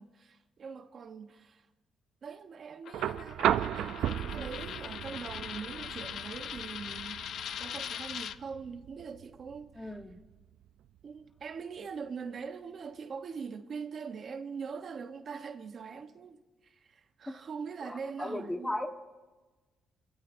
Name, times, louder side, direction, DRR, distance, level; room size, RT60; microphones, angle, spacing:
voice 1, 0.0-1.7 2.2-7.2 7.6-10.0 11.0-18.8, right 5 dB, 50° right, 0.9 m, -42 dB
Coin (dropping), 2.9-8.4, left 9 dB, 70° left, 0.5 m, -41 dB
sound 1, 2.9-11.0 12.4-12.5, right 11 dB, 80° right, 0.4 m, -36 dB
voice 2, 9.8-10.2 17.3-17.4 17.8-18.9, left 1 dB, 10° left, 1.2 m, -36 dB
24.5 x 16.5 x 2.6 m
cardioid pair, 90°, 0 cm